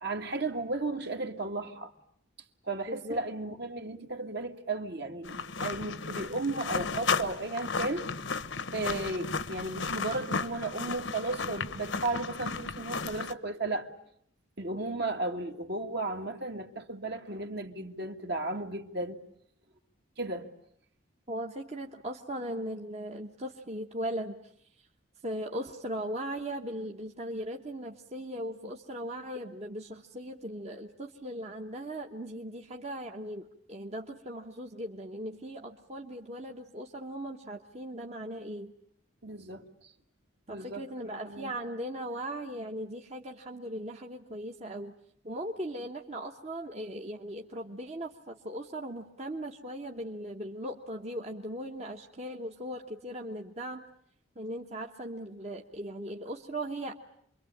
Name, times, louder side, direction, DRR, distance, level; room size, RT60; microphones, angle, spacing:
voice 1, 0.0-1.9 2.6-8.1 8.7-13.9 14.6-19.2 20.2-20.5 39.2-39.9 40.5-40.8 41.2-41.5, right 2 dB, 55° right, 2.1 m, -34 dB
voice 2, 2.9-3.2 14.7-14.8 21.3-24.4 24.8-24.9 25.2-38.7 40.5-44.9 45.2-53.8 54.3-56.9, right 1 dB, 30° right, 1.2 m, -38 dB
sound 1, 5.2-13.3, left 4 dB, 65° left, 1.1 m, -34 dB
28.0 x 23.5 x 8.7 m
head